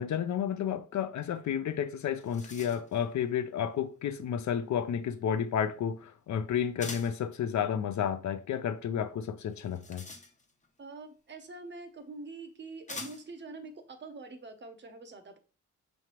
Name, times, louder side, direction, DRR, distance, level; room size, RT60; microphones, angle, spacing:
voice 1, 0.0-10.1, left 8 dB, 65° left, 0.5 m, -31 dB
sound 1, 1.7-1.8 2.0-3.0 6.8-7.3 9.5-10.7 11.8-11.9 12.9-13.4, left 3 dB, 25° left, 0.6 m, -44 dB
voice 2, 10.8-15.4, right 3 dB, 35° right, 0.7 m, -45 dB
5.7 x 3.2 x 2.9 m
wide cardioid pair, 120°, 30 cm